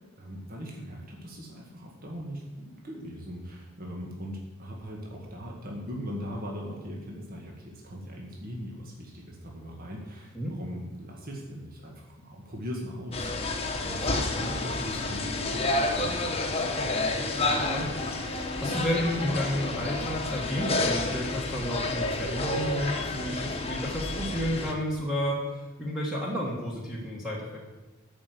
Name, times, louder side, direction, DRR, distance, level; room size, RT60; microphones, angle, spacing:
voice 1, 0.2-13.3 13.8-16.3, equal, 40° right, -1 dB, 1.9 m, -40 dB
sound 1, 13.1-24.7, left 2 dB, 25° left, 1.1 m, -30 dB
voice 2, 17.1-17.9 18.2-27.6, equal, ahead, -5 dB, 1.5 m, -31 dB
12.5 x 5.4 x 7.9 m, 1.2 s
head